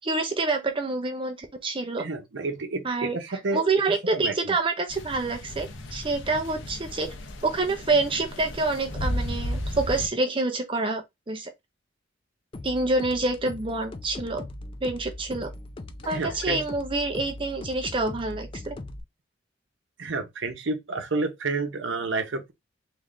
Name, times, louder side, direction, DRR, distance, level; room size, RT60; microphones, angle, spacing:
voice 1, 0.0-2.0 2.8-7.1 7.4-11.5 12.6-14.4 14.8-15.5 16.1-18.8, right 3 dB, 25° right, 0.6 m, -27 dB
voice 2, 2.0-4.6 16.1-16.6 20.0-22.5, right 3 dB, 75° right, 0.8 m, -30 dB
sound 1, 4.9-10.1, left 1 dB, 80° left, 0.9 m, -34 dB
sound 2, 12.5-19.0, left 1 dB, 30° left, 0.4 m, -40 dB
sound 3, 16.0-16.7, left 3 dB, 50° left, 1.6 m, -45 dB
3.5 x 3.1 x 3.7 m
head